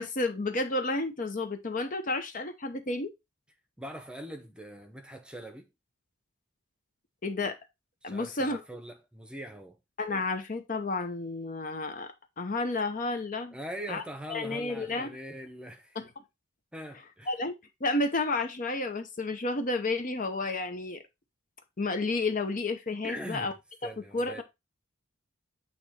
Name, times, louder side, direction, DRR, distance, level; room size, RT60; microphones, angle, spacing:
voice 1, 0.0-3.1 7.2-7.6 8.0-8.6 10.0-13.6 13.9-14.0 14.3-15.2 15.9-16.2 17.3-17.5 17.8-21.0 21.8-23.5 24.1-24.4, left 2 dB, 40° left, 0.8 m, -31 dB
voice 2, 3.8-5.7 8.0-9.8 13.5-16.0 16.7-17.3 23.0-23.5 23.8-24.4, right 1 dB, 5° right, 0.8 m, -42 dB
8.6 x 3.0 x 4.2 m
head